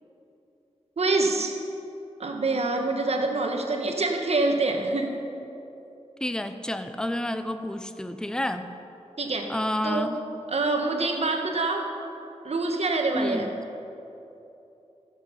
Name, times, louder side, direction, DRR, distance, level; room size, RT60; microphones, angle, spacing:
voice 1, 1.0-1.5 2.2-5.2 9.2-9.5 9.8-10.1 10.5-11.9 12.4-13.5, right 3 dB, 65° right, 3 dB, 1.3 m, -26 dB
voice 2, 6.2-8.7 9.5-10.2 13.1-13.5, left 1 dB, 5° left, 9 dB, 0.6 m, -29 dB
15.0 x 7.5 x 5.7 m, 2.9 s
cardioid pair, 60°, 12 cm